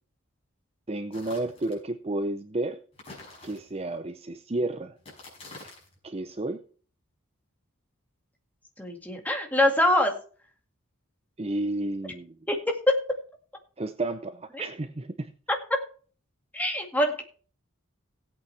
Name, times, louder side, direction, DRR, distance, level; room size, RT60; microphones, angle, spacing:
voice 1, 0.9-2.8 3.4-4.9 6.0-6.6 11.4-12.3 13.8-15.3, right 2 dB, 30° right, 10 dB, 0.6 m, -31 dB
sound 1, 1.1-1.8 2.9-4.0 5.0-6.0, left 2 dB, 25° left, 5.7 m, -47 dB
voice 2, 8.8-10.1 12.5-13.0 14.5-14.6 15.5-15.8 16.5-17.2, left 1 dB, 10° left, 2 dB, 2.1 m, -24 dB
17.5 x 8.5 x 3.4 m, 0.41 s
head